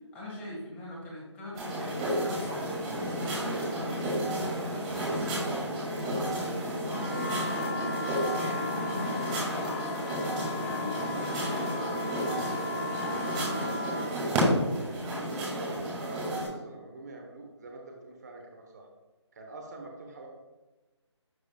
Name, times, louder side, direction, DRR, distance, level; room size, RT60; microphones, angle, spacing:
voice 1, 0.1-2.7 3.2-5.7 6.0-8.0 8.3-10.9 11.2-12.3, left 1 dB, 10° left, -5 dB, 1.8 m, -42 dB
sound 1, 1.5-16.5, right 1 dB, 15° right, 2.2 m, -31 dB
sound 2, 6.9-14.1, left 3 dB, 50° left, 1.1 m, -36 dB
voice 2, 13.7-18.9 19.3-20.3, right 2 dB, 35° right, 2 dB, 1.0 m, -45 dB
10.5 x 6.4 x 2.3 m, 1.1 s
figure-of-eight pair, 160°, 15 cm